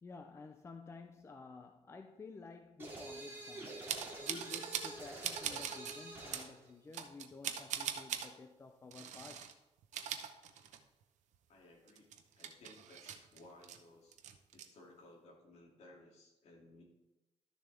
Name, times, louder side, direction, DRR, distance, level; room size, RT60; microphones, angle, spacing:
voice 1, 0.0-3.8 4.2-9.5, left 4 dB, 20° left, 0.4 m, -52 dB
sound 1, 2.8-6.5, right 2 dB, 20° right, 2.3 m, -47 dB
sound 2, 3.9-5.0 5.2-6.0 6.3-6.5 6.9-8.3 8.9-9.5 9.8-11.0 11.3-11.4 11.9-13.8 14.1-14.7, right 9 dB, 80° right, 0.8 m, -41 dB
voice 2, 11.5-12.1 12.4-14.2 14.5-16.8, left 1 dB, 60° left, 2.5 m, -59 dB
12.5 x 6.7 x 3.4 m
cardioid pair, 150°, 12 cm